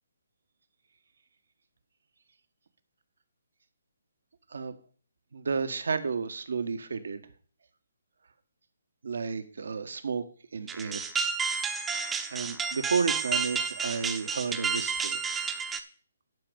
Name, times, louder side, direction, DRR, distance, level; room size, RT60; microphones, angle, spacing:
voice 1, 5.3-7.2 9.0-10.2 10.5-11.1 12.1-15.3, right 5 dB, 70° right, 10 dB, 1.4 m, -32 dB
sound 1, 10.7-15.8, right 5 dB, 10° right, 0.9 m, -31 dB
11.5 x 5.3 x 6.9 m, 0.42 s
hypercardioid pair, 145°, 0 cm